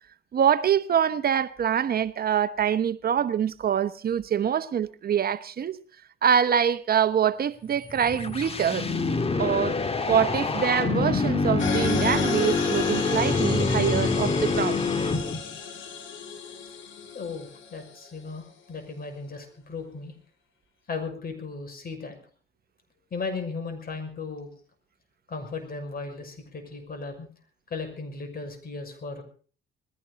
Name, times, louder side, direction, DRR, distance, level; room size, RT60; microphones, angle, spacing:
voice 1, 0.3-5.8 6.2-8.9 9.4-9.8 10.1-14.8, right 8 dB, 50° right, 0.9 m, -24 dB
sound 1, 7.8-15.6, left 4 dB, 30° left, 1.7 m, -26 dB
sound 2, 11.6-18.2, left 5 dB, 75° left, 3.7 m, -34 dB
voice 2, 17.1-20.1 20.9-22.2 23.1-24.5 25.3-27.3 27.7-29.2, left 4 dB, 50° left, 6.1 m, -36 dB
20.5 x 16.0 x 4.1 m
cardioid pair, 90°, 20 cm